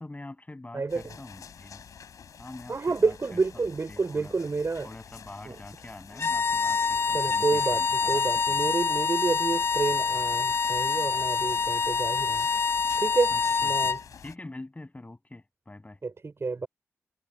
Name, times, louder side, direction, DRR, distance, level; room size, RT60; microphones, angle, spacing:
voice 1, 0.0-1.8 2.4-2.8 3.0-3.4 3.9-4.3 4.8-8.8 13.3-13.9 14.2-16.0, left 2 dB, 25° left, 7.7 m, -45 dB
voice 2, 0.7-1.1 2.7-4.9 5.4-5.6 7.1-12.5 13.0-13.3 13.6-14.0 16.0-16.7, right 4 dB, 50° right, 6.1 m, -29 dB
sound 1, 0.9-14.4, left 7 dB, 80° left, 5.9 m, -48 dB
sound 2, 6.1-14.0, left 5 dB, 45° left, 0.4 m, -26 dB
cardioid pair, 50°, 6 cm